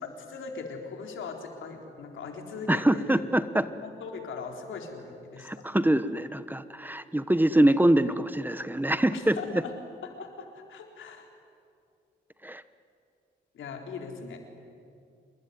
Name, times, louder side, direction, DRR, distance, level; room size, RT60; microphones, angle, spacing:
voice 1, 0.0-3.2 3.8-5.5 9.1-9.7 10.0-11.3 13.5-14.4, left 4 dB, 85° left, 3 dB, 3.9 m, -40 dB
voice 2, 2.7-3.7 5.4-9.6 12.4-12.6, right 1 dB, 10° right, 13 dB, 1.1 m, -24 dB
27.0 x 21.0 x 9.5 m, 2.4 s
cardioid pair, 70°, 20 cm